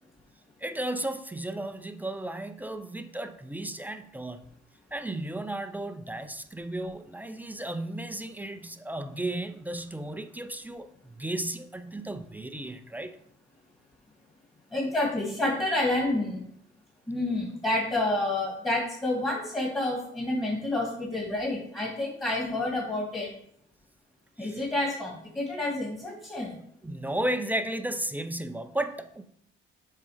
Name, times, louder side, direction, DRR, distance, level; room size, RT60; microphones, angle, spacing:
voice 1, 0.6-4.4 4.9-13.2 24.4-24.7 26.8-29.2, right 1 dB, 10° right, 8 dB, 0.4 m, -34 dB
voice 2, 14.7-16.5 17.1-23.3 24.4-26.6, left 2 dB, 15° left, -3 dB, 1.8 m, -29 dB
6.9 x 3.7 x 4.9 m, 0.67 s
cardioid pair, 130°, 21 cm